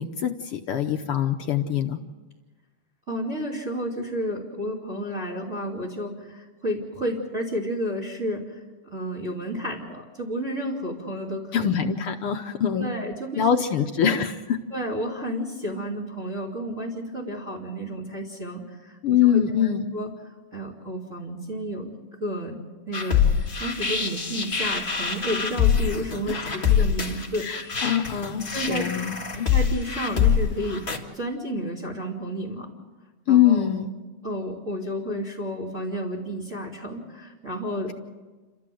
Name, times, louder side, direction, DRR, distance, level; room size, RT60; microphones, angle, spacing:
voice 1, 0.0-2.0 11.5-12.9 13.3-14.6 19.0-19.9 26.3-26.6 27.4-29.5 33.3-33.9, left 9 dB, 75° left, 5 dB, 1.2 m, -24 dB
voice 2, 3.1-8.6 8.9-11.7 12.7-13.5 13.8-13.9 14.7-20.1 20.5-22.6 22.9-27.5 28.5-28.8 29.5-30.8 31.1-32.7 33.3-33.7 34.2-37.9, equal, 25° right, -5 dB, 3.0 m, -31 dB
sound 1, 22.9-31.0, left 7 dB, 20° left, 1.4 m, -25 dB
30.0 x 13.5 x 7.7 m, 1.3 s
omnidirectional pair, 3.5 m